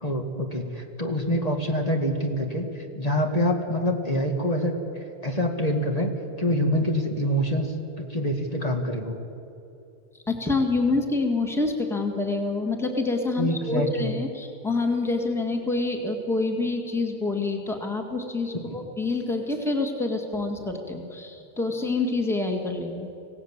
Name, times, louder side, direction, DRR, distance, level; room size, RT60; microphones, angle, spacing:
voice 1, 0.0-4.8 5.2-6.1 6.4-9.2 13.4-14.1 18.5-18.8, equal, 40° left, 2 dB, 2.1 m, -26 dB
voice 2, 10.3-23.1, left 3 dB, ahead, 3 dB, 1.9 m, -27 dB
25.5 x 17.5 x 7.4 m, 2.9 s
omnidirectional pair, 1.0 m